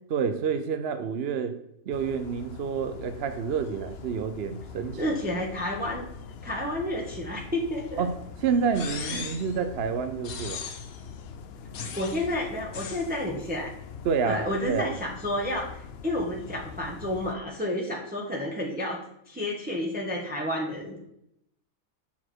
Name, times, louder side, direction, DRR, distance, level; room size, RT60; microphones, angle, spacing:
voice 1, 0.1-1.6 1.9-5.2 8.0-10.6 14.0-14.9, right 6 dB, 55° right, 9 dB, 0.8 m, -29 dB
sound 1, 1.9-17.4, left 6 dB, 60° left, 0.7 m, -43 dB
voice 2, 5.0-6.1 6.4-8.0 9.1-9.3 11.9-13.7 14.2-21.0, left 1 dB, 5° right, -2 dB, 1.2 m, -30 dB
sound 2, 8.7-9.5 10.2-11.0 11.7-12.3 12.7-13.1, left 6 dB, 75° left, 1.4 m, -38 dB
7.3 x 6.4 x 4.5 m, 0.76 s
omnidirectional pair, 1.5 m